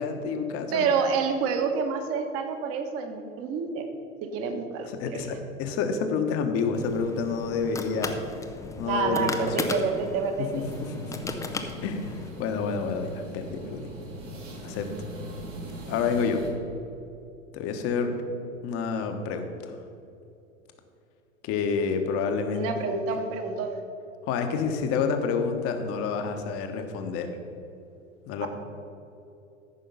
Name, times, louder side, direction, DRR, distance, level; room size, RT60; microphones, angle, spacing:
voice 1, 0.0-0.9 4.8-8.2 8.8-9.7 10.4-11.3 11.8-13.9 14.6-14.9 15.9-16.4 17.5-18.2 18.6-19.8 21.4-22.7 23.1-23.2 24.2-27.3 28.3-28.5, left 5 dB, 35° left, 6 dB, 1.2 m, -29 dB
voice 2, 0.7-3.8 4.2-5.2 8.8-10.7 22.5-23.8 28.4-28.5, right 5 dB, 35° right, 5 dB, 1.3 m, -28 dB
sound 1, 6.7-12.3, left 3 dB, 10° left, 0.5 m, -36 dB
sound 2, 10.5-16.5, equal, 70° right, 2.5 m, -40 dB
14.0 x 5.6 x 5.6 m, 2.8 s
figure-of-eight pair, 95°, 40 cm